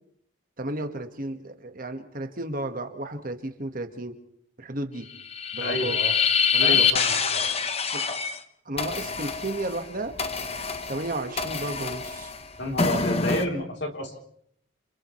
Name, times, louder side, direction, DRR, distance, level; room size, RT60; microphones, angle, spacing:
voice 1, 0.6-4.2 4.6-5.1 5.5-6.0 6.5-6.8 7.9-8.1 8.6-10.2 10.9-12.3, right 2 dB, 45° right, 7 dB, 1.6 m, -33 dB
sound 1, 5.2-8.4 8.8-13.5, left 6 dB, 30° left, 1.1 m, -26 dB
voice 2, 5.6-6.1 6.6-7.5 12.6-14.1, left 1 dB, 55° left, 2 dB, 3.5 m, -30 dB
29.5 x 28.0 x 3.2 m, 0.67 s
head